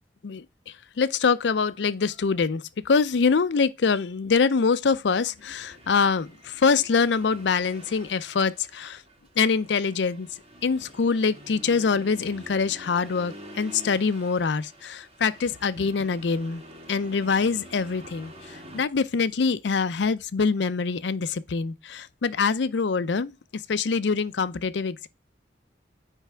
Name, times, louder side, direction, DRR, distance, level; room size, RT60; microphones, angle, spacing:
voice 1, 0.2-9.0 9.4-10.3 10.6-16.6 16.9-25.1, left 5 dB, 85° left, 0.5 m, -24 dB
Accelerating revving vroom, 5.4-18.8, right 1 dB, 35° right, 1.9 m, -47 dB
9.1 x 3.4 x 3.4 m
head